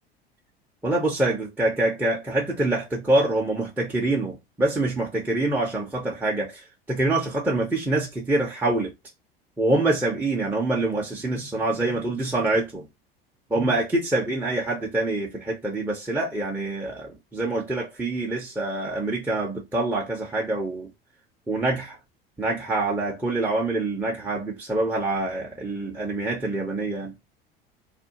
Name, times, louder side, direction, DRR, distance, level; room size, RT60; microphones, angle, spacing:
voice 1, 0.8-6.6 6.9-8.9 9.6-12.9 13.5-20.9 21.5-22.0 22.4-27.1, right 2 dB, 5° right, 0.7 m, -25 dB
2.5 x 2.1 x 2.9 m
figure-of-eight pair, 75°, 30 cm